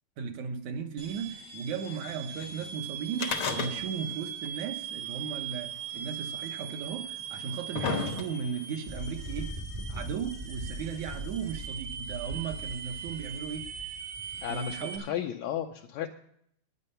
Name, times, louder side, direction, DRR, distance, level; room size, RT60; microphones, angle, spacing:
voice 1, 0.2-9.6 9.9-13.7 14.4-15.0, right 6 dB, 65° right, 2.1 m, -36 dB
sound 1, 1.0-15.0, right 8 dB, 85° right, 3.7 m, -40 dB
sound 2, 3.1-4.2 4.4-4.5 5.5-5.6 6.5-6.6 7.3-8.6 9.5-9.6, left 5 dB, 65° left, 1.3 m, -32 dB
sound 3, 8.9-14.7, right 2 dB, 30° right, 0.5 m, -41 dB
voice 2, 14.4-16.1, left 10 dB, 80° left, 1.7 m, -34 dB
11.0 x 9.7 x 5.5 m
omnidirectional pair, 3.9 m